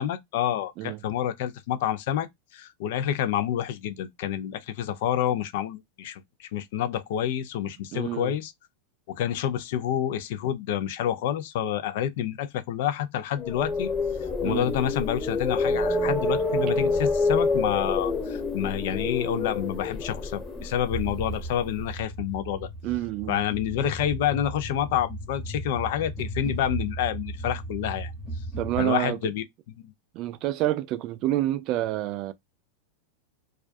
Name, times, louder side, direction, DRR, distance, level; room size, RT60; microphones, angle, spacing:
voice 1, 0.0-8.5 9.1-13.9 14.4-22.7 23.3-28.1 28.8-29.9, left 10 dB, 65° left, 0.5 m, -28 dB
voice 2, 7.9-8.4 14.4-14.7 22.8-23.4 28.6-29.2 30.1-32.3, right 14 dB, 45° right, 0.3 m, -28 dB
sound 1, 13.4-21.5, left 3 dB, 15° left, 1.0 m, -27 dB
sound 2, 20.9-28.8, right 1 dB, 25° right, 0.8 m, -36 dB
2.4 x 2.2 x 2.4 m
hypercardioid pair, 115°, 0 cm